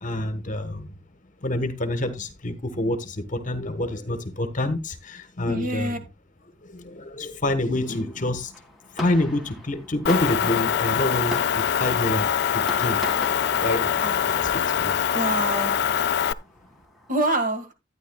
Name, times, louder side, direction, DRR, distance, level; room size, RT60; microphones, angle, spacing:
voice 1, 0.0-0.9 1.4-6.0 6.6-8.5 8.9-13.0 13.3-15.0, left 1 dB, 40° left, 1.3 m, -27 dB
voice 2, 5.5-6.0 14.0-14.2 15.1-15.8 17.1-17.7, right 1 dB, 45° right, 1.8 m, -26 dB
Fireworks, 7.7-17.1, left 1 dB, ahead, 1.9 m, -41 dB
Motor vehicle (road) / Engine, 10.1-16.3, left 9 dB, 60° left, 0.4 m, -24 dB
12.5 x 9.7 x 2.3 m
head